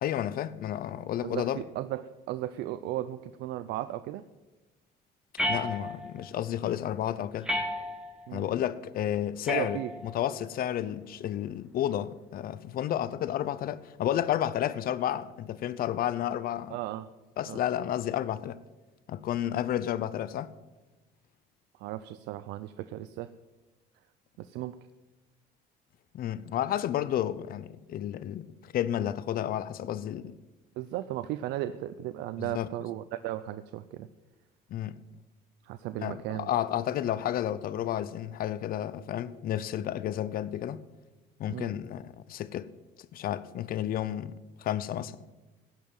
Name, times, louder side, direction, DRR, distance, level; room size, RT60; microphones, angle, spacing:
voice 1, 0.0-1.6 5.5-7.5 8.3-9.8 10.1-16.7 17.4-18.6 19.1-20.5 26.1-30.4 32.4-32.7 34.7-35.0 36.0-40.8 41.4-42.7 43.1-45.2, left 11 dB, 60° left, 0.7 m, -31 dB
voice 2, 1.2-2.0 2.3-4.2 8.3-8.5 9.5-9.9 16.7-17.1 17.5-17.6 21.8-23.3 24.4-24.7 30.8-34.1 35.6-36.6 41.5-41.7, right 14 dB, 90° right, 0.5 m, -35 dB
sound 1, 5.4-6.3 7.4-8.3 9.5-10.3, left 1 dB, 5° right, 1.8 m, -33 dB
17.0 x 5.6 x 8.8 m
cardioid pair, 110°, 17 cm